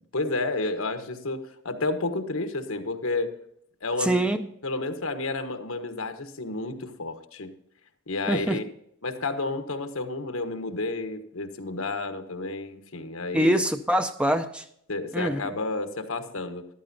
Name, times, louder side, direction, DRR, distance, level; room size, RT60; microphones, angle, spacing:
voice 1, 0.1-3.4 3.8-4.2 4.6-7.5 8.1-8.6 9.0-13.5 14.9-16.7, left 3 dB, 85° left, 1.3 m, -31 dB
voice 2, 4.0-4.5 8.3-8.6 13.3-14.6 15.1-15.4, right 1 dB, 5° right, 0.5 m, -24 dB
14.0 x 12.5 x 2.7 m
head